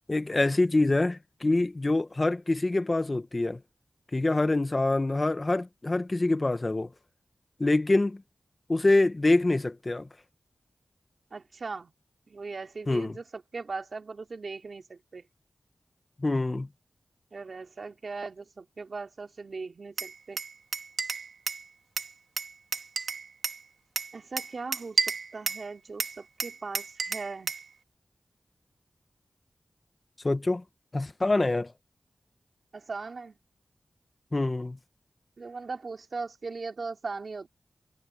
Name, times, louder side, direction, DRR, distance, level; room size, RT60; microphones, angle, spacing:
voice 1, 0.1-3.6 4.1-6.9 7.6-8.2 8.7-10.1 12.9-13.2 16.2-16.7 30.2-30.6 30.9-31.7 34.3-34.8, left 2 dB, 35° left, 1.2 m, -25 dB
voice 2, 11.3-11.9 12.3-15.2 17.3-20.4 24.1-27.5 32.7-33.4 35.4-37.5, right 4 dB, 65° right, 3.5 m, -39 dB
Glass, 20.0-21.6 22.0-23.6 24.0-25.7 26.0-27.7, right 5 dB, 85° right, 1.6 m, -32 dB
wide cardioid pair, 65°, 0 cm